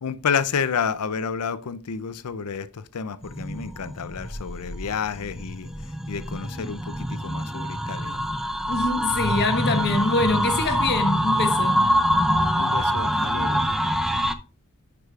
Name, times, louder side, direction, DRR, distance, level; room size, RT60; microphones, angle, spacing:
voice 1, 0.0-5.7 6.1-8.2 12.6-13.6, left 6 dB, 90° left, 0.5 m, -30 dB
sound 1, 3.2-14.3, equal, ahead, 0.4 m, -25 dB
voice 2, 8.7-11.8, left 3 dB, 50° left, 1.0 m, -24 dB
11.0 x 4.8 x 2.4 m
head